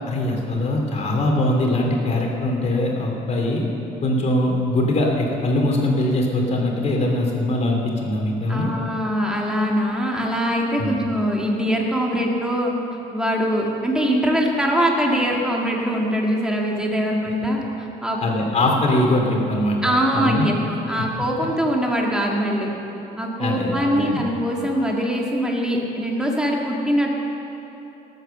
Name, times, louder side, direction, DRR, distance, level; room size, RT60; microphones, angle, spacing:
voice 1, 0.1-3.6 4.0-8.7 10.8-10.9 18.2-20.5 23.4-24.2, left 1 dB, 40° left, 0 dB, 2.8 m, -22 dB
voice 2, 8.5-18.2 19.8-20.5 20.9-22.7 23.2-27.1, equal, 5° right, -2 dB, 2.0 m, -22 dB
18.5 x 8.1 x 6.9 m, 3.0 s
cardioid pair, 110°, 17 cm